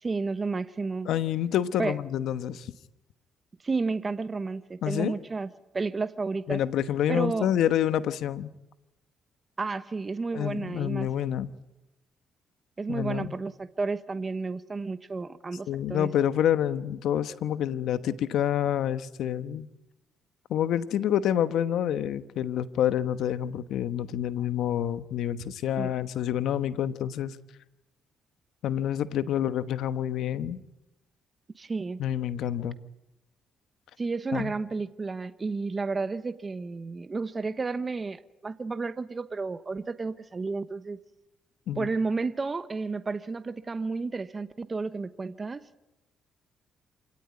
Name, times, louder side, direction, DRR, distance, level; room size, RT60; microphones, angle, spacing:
voice 1, 0.0-1.1 1.8-2.0 3.6-6.6 7.1-7.5 9.6-11.1 12.8-16.1 25.8-25.9 31.6-32.0 34.0-41.0 41.8-45.6, right 4 dB, 30° right, 1.0 m, -32 dB
voice 2, 1.1-2.7 4.8-5.1 6.5-8.5 10.3-11.5 12.9-13.3 15.7-19.7 20.5-27.4 28.6-30.6 32.0-32.8 34.3-34.5 41.7-41.9, left 10 dB, 80° left, 1.1 m, -28 dB
27.0 x 17.5 x 9.6 m
cardioid pair, 90°, 0 cm